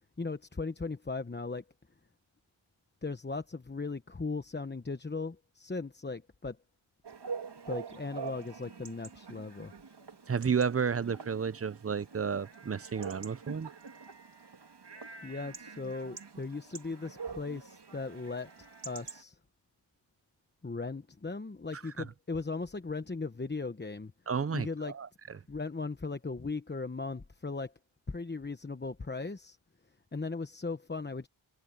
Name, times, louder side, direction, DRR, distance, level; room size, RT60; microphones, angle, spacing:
voice 1, 0.2-1.6 3.0-6.6 7.7-9.7 15.2-19.4 20.6-24.1 24.5-25.0 25.5-27.7 28.1-29.6 30.1-31.3, left 3 dB, 20° left, 0.9 m, -38 dB
Chatter / Bark / Livestock farm animals working animals, 7.0-19.2, right 5 dB, 55° right, 2.6 m, -45 dB
voice 2, 10.3-13.7 22.0-22.1 24.3-25.1, right 6 dB, 30° right, 0.5 m, -32 dB
wide cardioid pair, 85°, 49 cm